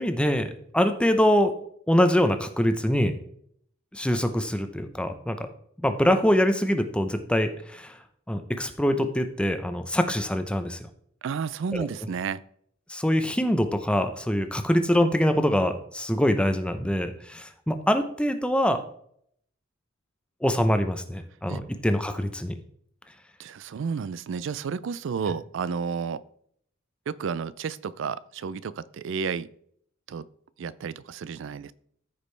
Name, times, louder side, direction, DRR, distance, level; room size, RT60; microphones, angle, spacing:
voice 1, 0.0-1.5 1.9-3.2 3.9-5.4 5.8-8.0 8.3-10.8 11.7-11.9 12.9-18.8 20.4-22.5, equal, 5° left, 8 dB, 0.6 m, -24 dB
voice 2, 11.2-12.4 21.5-21.6 23.4-26.2 27.1-29.5 30.1-30.3 30.6-31.7, right 6 dB, 65° right, 18 dB, 0.4 m, -31 dB
14.0 x 5.2 x 3.2 m, 0.67 s
head